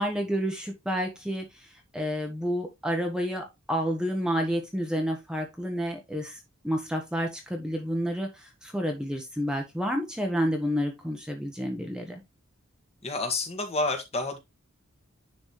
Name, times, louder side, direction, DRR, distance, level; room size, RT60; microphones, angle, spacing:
voice 1, 0.0-12.2, equal, 5° right, 1.1 m, -30 dB
voice 2, 13.0-14.4, left 2 dB, 30° left, 1.7 m, -29 dB
10.0 x 4.1 x 3.1 m
head